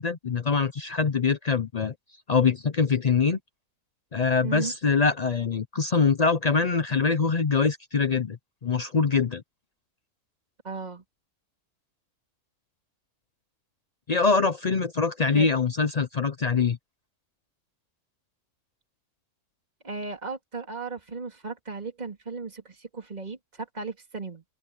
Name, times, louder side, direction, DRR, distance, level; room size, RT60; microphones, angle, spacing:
voice 1, 0.0-1.9 2.3-3.4 4.1-9.4 14.1-16.8, left 5 dB, 65° left, 0.4 m, -24 dB
voice 2, 4.4-4.7 10.6-11.0 15.3-15.5 19.8-24.4, right 4 dB, 25° right, 3.1 m, -36 dB
omnidirectional pair, 1.6 m